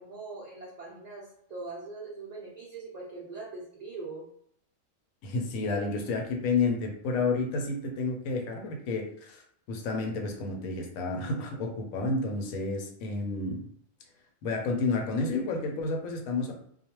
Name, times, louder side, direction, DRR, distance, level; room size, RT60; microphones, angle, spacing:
voice 1, 0.0-4.3, right 3 dB, 80° right, -5 dB, 0.3 m, -42 dB
voice 2, 5.2-9.4 9.7-13.6 14.4-16.5, left 3 dB, 85° left, 2 dB, 1.0 m, -30 dB
2.3 x 2.1 x 2.9 m, 0.69 s
omnidirectional pair, 1.4 m